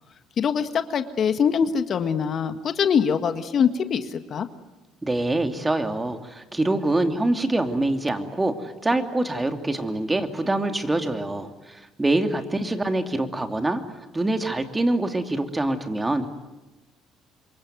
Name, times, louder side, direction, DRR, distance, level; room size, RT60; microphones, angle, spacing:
voice 1, 0.4-4.5, left 7 dB, 50° left, 9 dB, 1.6 m, -23 dB
voice 2, 5.0-13.8 14.1-16.3, right 2 dB, 15° right, 6 dB, 2.8 m, -25 dB
27.0 x 23.0 x 9.4 m, 1.1 s
hypercardioid pair, 65°, 0 cm